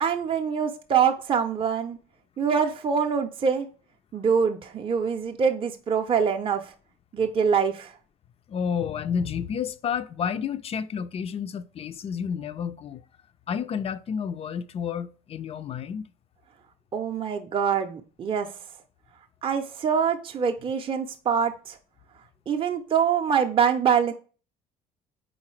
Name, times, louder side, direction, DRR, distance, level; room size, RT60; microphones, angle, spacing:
voice 1, 0.0-2.0 2.4-3.7 4.1-6.7 7.1-7.9 16.9-18.5 19.4-21.8 22.5-24.1, right 7 dB, 30° right, 0.6 m, -24 dB
voice 2, 8.5-13.0 13.5-16.0, left 7 dB, 35° left, 0.4 m, -30 dB
4.0 x 3.9 x 3.1 m
supercardioid pair, 80°, 17 cm